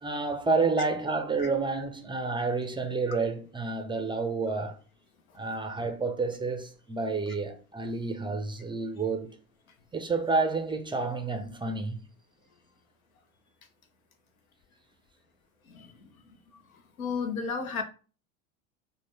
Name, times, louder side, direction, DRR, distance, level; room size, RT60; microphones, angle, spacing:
voice 1, 0.0-4.8 5.3-9.3 9.9-12.0, right 4 dB, 10° right, 0.4 m, -29 dB
voice 2, 17.0-17.8, left 5 dB, 85° left, 0.7 m, -31 dB
3.6 x 2.1 x 3.2 m
hypercardioid pair, 75°, 41 cm